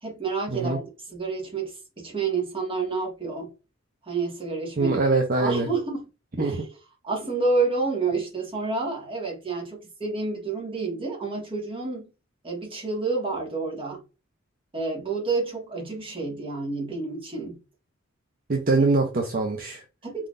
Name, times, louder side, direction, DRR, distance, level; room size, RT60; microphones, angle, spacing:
voice 1, 0.0-0.8 1.1-3.5 4.1-5.0 5.4-6.1 6.3-6.7 7.0-12.1 12.4-14.0 14.7-17.6 20.0-20.3, right 4 dB, 25° right, 1.9 m, -29 dB
voice 2, 4.8-5.7 6.4-6.6 18.5-19.8, right 3 dB, 45° right, 0.8 m, -23 dB
4.4 x 3.8 x 2.6 m
head